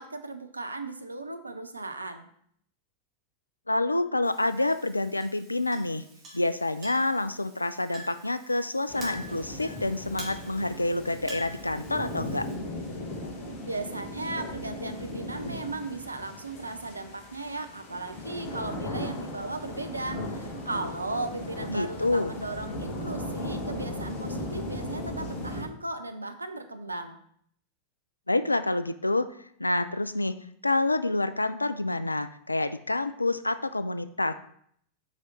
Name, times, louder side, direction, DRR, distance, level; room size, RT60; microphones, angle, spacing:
voice 1, 0.0-2.3 13.7-27.2, right 2 dB, 80° right, 8 dB, 0.5 m, -36 dB
voice 2, 3.7-6.0 6.3-12.5 21.7-22.3 28.3-29.3 29.6-34.3, left 2 dB, 85° left, 13 dB, 0.3 m, -28 dB
Chink clink, 4.2-12.5, right 1 dB, 30° right, 1.8 m, -46 dB
sound 1, 8.9-25.6, left 1 dB, 45° left, 1.4 m, -37 dB
5.0 x 4.9 x 4.1 m, 0.66 s
figure-of-eight pair, 90°, 0 cm